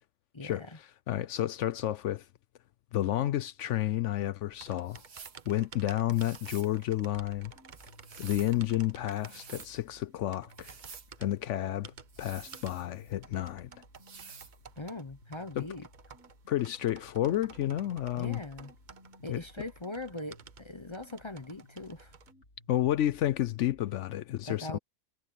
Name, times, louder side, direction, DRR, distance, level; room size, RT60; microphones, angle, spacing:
voice 1, 0.3-0.8 14.8-15.9 18.2-18.7 19.2-22.1 24.4-24.8, left 2 dB, 25° left, 0.6 m, -41 dB
voice 2, 1.1-2.3 2.9-5.0 5.5-7.5 8.2-10.7 11.2-11.9 12.2-13.7 15.6-15.7 16.5-18.4 19.3-19.4 22.7-24.8, left 13 dB, 70° left, 0.7 m, -30 dB
sound 1, 4.5-22.3, right 6 dB, 40° right, 0.7 m, -54 dB
sound 2, 4.9-5.4 6.1-6.7 7.7-8.6 9.1-9.7 10.5-11.1 12.1-13.1 14.0-14.6, right 6 dB, 90° right, 2.4 m, -50 dB
sound 3, 7.1-24.2, left 1 dB, 45° left, 7.0 m, -58 dB
omnidirectional pair, 1.7 m